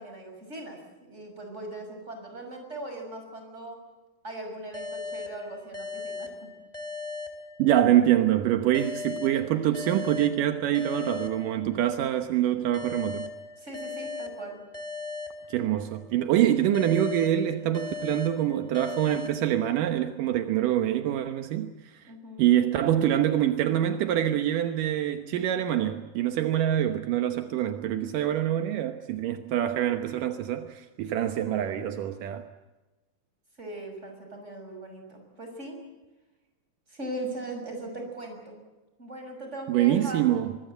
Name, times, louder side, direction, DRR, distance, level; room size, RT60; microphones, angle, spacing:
voice 1, 0.0-3.8 4.2-6.5 13.6-14.6 22.1-22.5 31.4-32.0 33.6-35.8 36.9-38.6 39.0-40.7, right 2 dB, 20° right, 3 dB, 6.5 m, -39 dB
sound 1, 4.7-8.1 8.7-12.1 12.7-16.1 16.7-20.1, left 4 dB, 10° left, 3.4 m, -39 dB
voice 2, 7.6-13.3 15.5-21.7 22.4-32.4 39.7-40.5, right 11 dB, 80° right, 7 dB, 2.7 m, -25 dB
24.5 x 21.5 x 8.0 m, 1.1 s
omnidirectional pair, 3.8 m